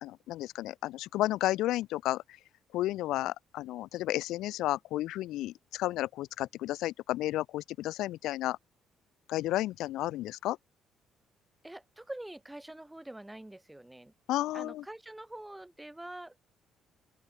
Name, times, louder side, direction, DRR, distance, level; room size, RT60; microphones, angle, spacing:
voice 1, 0.0-2.2 2.7-8.6 9.3-10.6 14.3-14.8, left 15 dB, 85° left, 2.1 m, -32 dB
voice 2, 11.6-14.1 14.5-16.4, right 1 dB, 5° right, 3.2 m, -45 dB
open air
cardioid pair, 160°, 0 cm